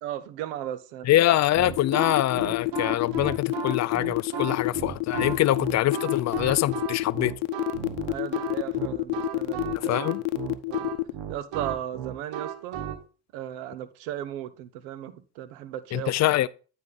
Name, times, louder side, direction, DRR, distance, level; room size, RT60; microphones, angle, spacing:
voice 1, 0.0-1.1 4.3-4.6 8.1-10.0 10.7-10.9 11.3-12.8 13.3-16.1, right 11 dB, 85° right, 0.8 m, -36 dB
voice 2, 1.0-7.3 9.7-10.2 15.9-16.5, left 14 dB, 40° left, 0.4 m, -24 dB
sound 1, 1.5-13.0, right 7 dB, 65° right, 1.1 m, -34 dB
sound 2, 1.8-11.1, left 22 dB, 75° left, 0.7 m, -28 dB
9.4 x 4.1 x 3.8 m
supercardioid pair, 75°, 46 cm